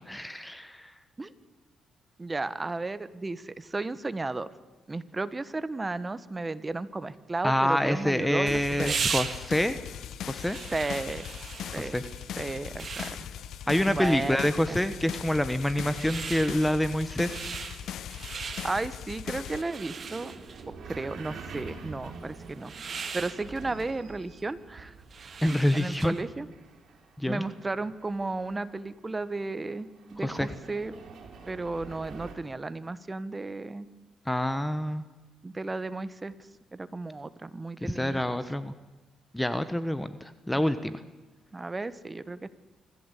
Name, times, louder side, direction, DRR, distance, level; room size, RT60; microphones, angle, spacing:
voice 1, 0.1-0.9 7.4-9.8 10.3-10.6 11.7-12.0 13.7-17.4 25.4-26.1 27.2-27.4 30.2-30.5 34.2-35.0 37.8-38.7 39.3-40.9, left 1 dB, 5° left, 12 dB, 1.1 m, -27 dB
voice 2, 2.2-4.5 4.9-9.0 10.7-11.2 11.7-12.0 12.4-13.3 13.9-14.4 14.7-14.8 18.6-20.3 20.7-22.7 23.1-24.9 25.4-26.5 27.2-31.0 31.5-33.9 35.4-36.3 36.7-38.2 40.5-40.6 41.5-42.5, right 3 dB, 20° right, 15 dB, 1.3 m, -34 dB
sound 1, 7.8-26.3, right 5 dB, 45° right, 2.1 m, -40 dB
sound 2, 8.5-19.6, left 10 dB, 70° left, 0.7 m, -39 dB
sound 3, 17.1-32.4, right 4 dB, 65° right, 5.2 m, -48 dB
25.5 x 15.0 x 8.4 m, 1.2 s
cardioid pair, 90°, 0 cm